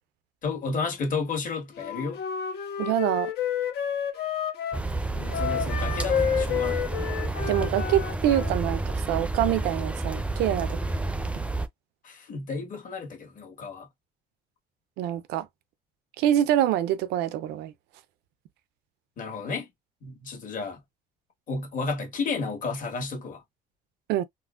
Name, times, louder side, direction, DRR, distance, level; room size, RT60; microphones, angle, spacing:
voice 1, 0.4-2.2 5.1-7.0 12.0-13.9 19.2-19.7 20.0-20.8 21.5-23.4, left 4 dB, 50° left, 1.5 m, -32 dB
Wind instrument woodwind instrument, 1.7-4.8 5.3-8.5, left 8 dB, 75° left, 1.0 m, -30 dB
voice 2, 2.8-3.3 7.5-10.8 15.0-15.5 16.2-17.7 24.1-24.2, right 12 dB, 85° right, 0.5 m, -25 dB
sound 1, 4.7-11.7, right 2 dB, 5° right, 0.5 m, -30 dB
3.8 x 2.1 x 2.4 m
cardioid pair, 110°, 17 cm